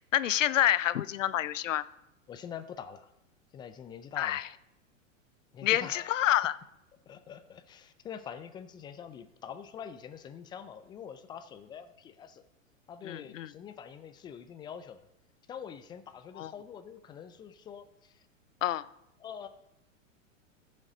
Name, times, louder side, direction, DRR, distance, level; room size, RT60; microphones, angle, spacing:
voice 1, 0.1-1.9 4.2-4.5 5.6-6.6 13.0-13.5 16.4-16.5 18.6-18.9, left 12 dB, 70° left, 17 dB, 0.6 m, -28 dB
voice 2, 2.3-3.1 3.5-4.4 5.5-6.1 7.1-12.4 12.9-15.1 15.5-18.3 19.2-19.5, left 8 dB, 10° left, 10 dB, 0.3 m, -45 dB
14.5 x 6.4 x 5.0 m, 0.85 s
hypercardioid pair, 100°, 39 cm